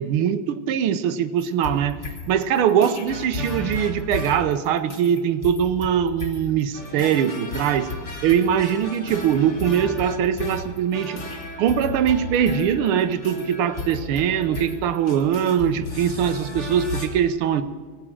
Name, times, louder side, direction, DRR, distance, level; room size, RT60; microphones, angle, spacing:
voice 1, 0.0-2.0 2.3-7.9 8.2-11.2 11.6-17.6, right 8 dB, 80° right, 11 dB, 1.7 m, -22 dB
sound 1, 1.4-17.1, left 2 dB, 35° left, 1.9 m, -34 dB
19.5 x 8.7 x 7.5 m, 1.5 s
omnidirectional pair, 2.4 m